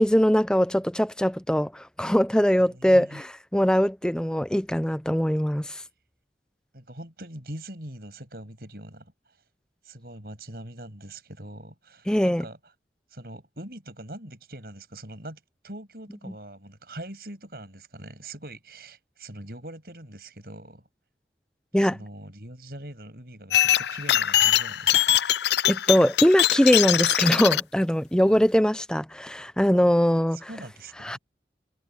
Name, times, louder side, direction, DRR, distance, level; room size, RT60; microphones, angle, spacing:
voice 1, 0.0-3.3 3.5-5.8 12.1-12.4 21.7-22.0 25.7-30.4 31.0-31.2, equal, 5° left, 0.6 m, -22 dB
voice 2, 2.6-3.2 6.7-9.4 9.8-12.6 13.1-20.9 21.8-25.2 28.3-28.4 30.3-31.2, right 1 dB, 60° right, 7.3 m, -42 dB
sound 1, 23.5-27.6, left 12 dB, 75° left, 0.5 m, -22 dB
head